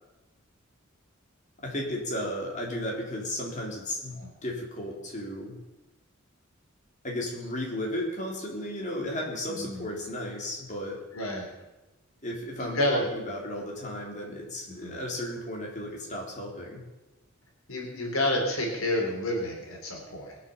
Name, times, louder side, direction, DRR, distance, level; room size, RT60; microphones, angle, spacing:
voice 1, 1.6-5.6 7.0-11.0 12.2-16.8, left 1 dB, 35° left, -1 dB, 3.6 m, -34 dB
voice 2, 9.5-9.9 11.1-11.5 12.6-13.1 14.7-15.0 17.7-20.4, left 1 dB, 85° left, 0 dB, 3.8 m, -29 dB
21.0 x 7.2 x 7.2 m, 1.1 s
head